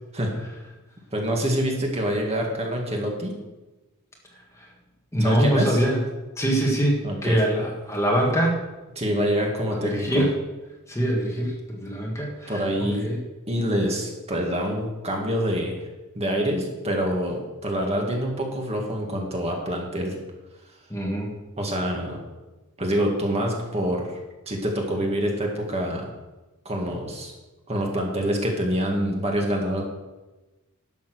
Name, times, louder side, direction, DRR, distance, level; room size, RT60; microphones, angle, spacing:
voice 1, 1.1-3.4 5.2-5.8 7.0-7.4 9.0-10.3 12.5-13.1 13.5-15.8 16.2-20.2 21.6-22.2 22.8-24.2 24.5-26.1 26.7-27.3 27.7-29.8, equal, 30° right, 0 dB, 2.0 m, -26 dB
voice 2, 5.1-6.0 6.4-8.6 9.8-10.3 10.9-12.6 13.0-13.2 20.9-21.3, right 1 dB, 15° left, -1 dB, 1.8 m, -23 dB
11.5 x 7.1 x 6.3 m, 1.1 s
head